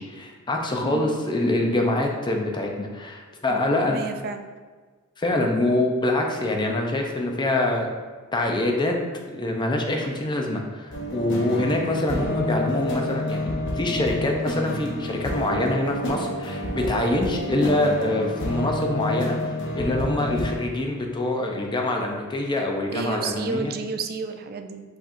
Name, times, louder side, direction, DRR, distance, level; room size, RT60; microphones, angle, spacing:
voice 1, 0.0-4.0 5.2-7.9 8.3-9.0 9.3-23.7, left 1 dB, 20° left, 2 dB, 0.5 m, -25 dB
voice 2, 3.5-4.4 17.5-17.7 22.9-24.8, right 4 dB, 45° right, 7 dB, 0.4 m, -31 dB
sound 1, 10.9-20.6, left 1 dB, 60° left, 0.8 m, -28 dB
4.8 x 4.2 x 2.6 m, 1.4 s
head